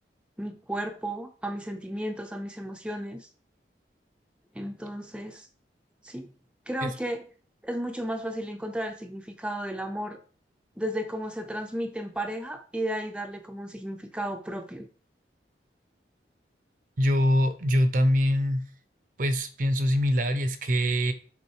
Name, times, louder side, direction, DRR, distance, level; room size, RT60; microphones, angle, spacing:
voice 1, 0.4-3.3 4.5-5.5 6.0-6.3 6.7-7.3 7.6-10.2 10.8-14.9, right 1 dB, 5° right, 5 dB, 0.6 m, -34 dB
voice 2, 17.0-18.6 19.2-21.1, equal, 50° right, 10 dB, 0.7 m, -24 dB
7.1 x 3.7 x 4.8 m, 0.39 s
head